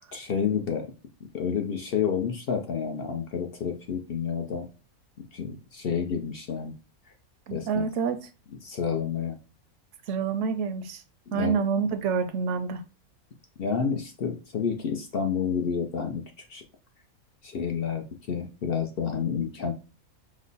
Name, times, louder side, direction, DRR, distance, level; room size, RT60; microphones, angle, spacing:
voice 1, 0.1-0.9 1.3-4.7 5.3-6.7 7.5-7.9 8.6-9.4 11.3-11.6 13.6-16.2 16.5-16.6 17.4-19.7, left 7 dB, 60° left, 0.6 m, -29 dB
voice 2, 7.5-8.3 10.1-11.0 11.3-12.8, right 6 dB, 65° right, 0.8 m, -27 dB
5.1 x 2.0 x 3.9 m
omnidirectional pair, 1.5 m